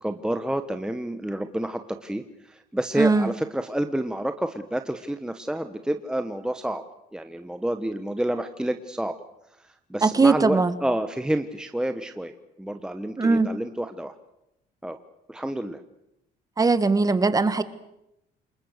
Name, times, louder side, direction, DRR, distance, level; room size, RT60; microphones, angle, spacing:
voice 1, 0.0-6.8 7.1-9.1 9.9-14.1 14.8-15.0 15.3-15.8, right 1 dB, 5° right, 7 dB, 1.1 m, -29 dB
voice 2, 3.0-3.3 10.0-10.7 13.2-13.5 16.6-17.6, right 4 dB, 20° right, 12 dB, 1.6 m, -20 dB
28.0 x 21.5 x 6.6 m, 0.86 s
cardioid pair, 110°, 17 cm